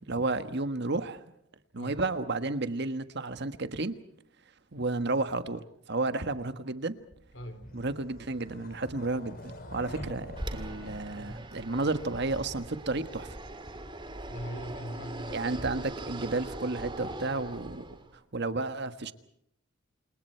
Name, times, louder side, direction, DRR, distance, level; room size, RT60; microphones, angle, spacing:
voice 1, 0.1-1.2 1.7-3.9 4.7-6.9 7.7-13.4 15.3-18.0 18.3-19.1, right 3 dB, 55° right, 10 dB, 1.5 m, -32 dB
voice 2, 1.7-2.0 7.3-7.8 11.0-11.5 14.3-15.5, equal, 60° left, 9 dB, 3.8 m, -41 dB
sound 1, 7.1-12.0, left 1 dB, 45° left, 5.4 m, -46 dB
Fixed-wing aircraft airplane, 10.4-18.1, right 1 dB, 25° right, 2.5 m, -41 dB
29.5 x 28.0 x 4.5 m, 0.71 s
head